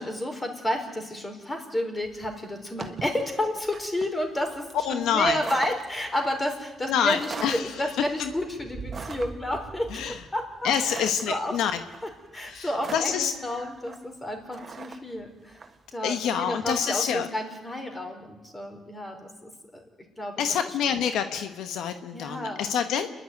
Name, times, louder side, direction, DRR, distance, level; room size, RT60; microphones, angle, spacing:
voice 1, 0.0-11.5 12.3-15.6 15.9-19.8 20.2-20.4 22.1-22.6, left 1 dB, 20° left, 4 dB, 4.6 m, -31 dB
sound 1, 2.0-15.8, right 4 dB, 40° right, 1.6 m, -42 dB
voice 2, 4.8-5.4 6.9-7.8 8.2-8.3 9.9-10.2 10.6-11.8 12.5-13.3 16.0-17.3 20.4-23.1, left 8 dB, 85° left, 8 dB, 1.2 m, -27 dB
28.5 x 11.0 x 9.5 m, 1.1 s
cardioid pair, 90°, 0 cm